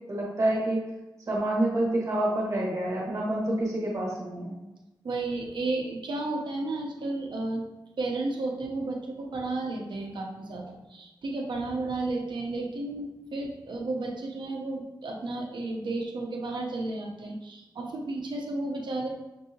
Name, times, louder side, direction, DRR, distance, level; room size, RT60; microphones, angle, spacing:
voice 1, 0.1-0.8 1.3-4.5, right 1 dB, 40° right, -4 dB, 1.1 m, -27 dB
voice 2, 5.0-7.6 8.0-19.1, right 2 dB, 65° right, 0 dB, 0.7 m, -33 dB
5.4 x 2.7 x 2.8 m, 1.0 s
wide cardioid pair, 160°, 8 cm